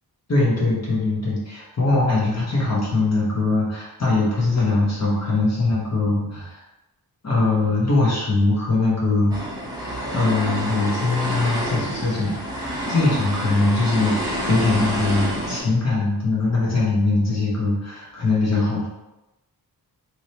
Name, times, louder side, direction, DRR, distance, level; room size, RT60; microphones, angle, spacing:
voice 1, 0.3-6.6 7.2-9.4 10.1-18.9, left 2 dB, 40° left, -6 dB, 1.0 m, -21 dB
sound 1, 9.3-15.6, equal, 10° right, 0.9 m, -28 dB
3.2 x 2.8 x 2.8 m, 0.99 s
wide cardioid pair, 110°, 39 cm